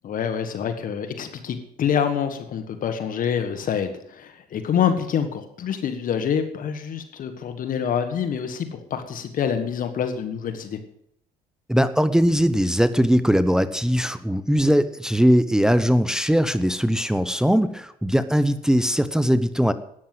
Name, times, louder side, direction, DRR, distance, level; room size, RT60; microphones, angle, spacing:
voice 1, 0.0-10.8, left 8 dB, 55° left, 8 dB, 1.6 m, -26 dB
voice 2, 11.7-19.7, equal, 5° right, 12 dB, 0.8 m, -20 dB
12.5 x 9.5 x 7.7 m, 0.72 s
cardioid pair, 110°, 17 cm